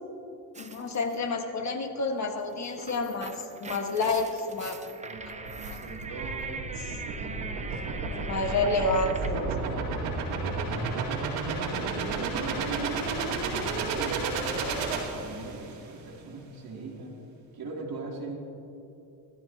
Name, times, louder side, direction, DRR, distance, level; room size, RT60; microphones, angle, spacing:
sound 1, 0.5-1.2 2.5-9.5, right 4 dB, 15° right, 0.8 m, -42 dB
voice 1, 0.6-4.8 5.7-5.8 8.3-9.5, left 3 dB, 40° left, 4 dB, 1.6 m, -29 dB
voice 2, 5.0-8.6 9.3-9.9 10.4-10.9 11.6-14.6 15.1-17.1 17.5-18.4, right 3 dB, 50° right, -2 dB, 3.1 m, -41 dB
sound 2, 5.4-15.8, right 4 dB, 90° right, 2.3 m, -32 dB
18.5 x 12.5 x 2.9 m, 2.9 s
supercardioid pair, 90°, 45 cm